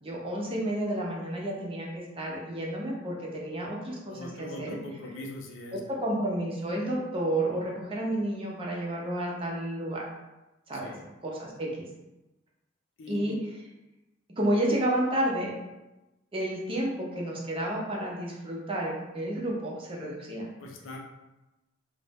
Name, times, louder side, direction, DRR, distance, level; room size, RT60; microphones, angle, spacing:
voice 1, 0.0-4.8 5.7-10.0 10.7-10.9 11.2-11.8 13.1-13.4 14.4-15.5 16.3-20.5, right 1 dB, 30° right, -3 dB, 0.6 m, -31 dB
voice 2, 4.1-5.8 10.7-11.0 13.0-13.3 20.6-21.0, left 2 dB, 75° left, 1 dB, 0.5 m, -41 dB
2.5 x 2.0 x 3.4 m, 1.0 s
head